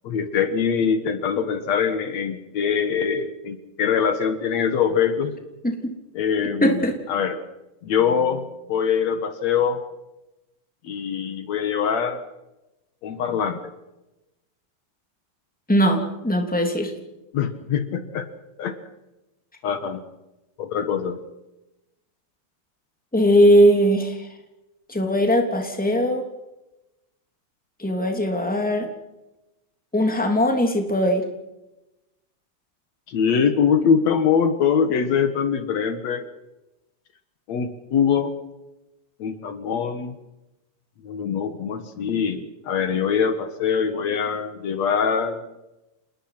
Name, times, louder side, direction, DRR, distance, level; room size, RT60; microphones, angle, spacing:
voice 1, 0.0-5.4 6.1-6.8 7.1-7.4 7.8-9.8 10.8-12.2 13.0-13.7 17.3-18.3 18.6-18.8 19.6-20.0 20.6-21.2 33.1-36.3 37.5-38.3 39.2-40.2 41.0-45.4, left 7 dB, 70° left, 9 dB, 2.7 m, -23 dB
voice 2, 5.6-5.9 6.6-7.0 15.7-16.9 23.1-24.3 24.9-26.3 27.8-28.9 29.9-31.2, equal, 5° left, 3 dB, 2.9 m, -19 dB
28.0 x 20.5 x 6.0 m, 0.97 s
omnidirectional pair, 3.3 m